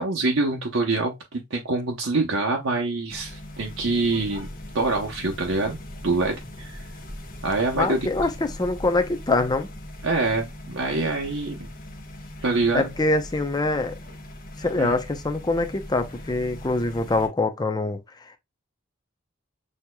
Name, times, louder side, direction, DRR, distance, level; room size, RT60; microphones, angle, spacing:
voice 1, 0.0-4.5 4.7-6.8 7.4-8.1 10.0-11.7 12.4-13.0 14.8-15.0, right 3 dB, 75° right, 0.8 m, -25 dB
sound 1, 3.1-17.3, left 1 dB, 45° left, 1.1 m, -40 dB
voice 2, 7.8-9.7 12.7-14.0 14.6-18.0, left 2 dB, 20° left, 0.6 m, -24 dB
6.4 x 2.8 x 2.2 m
head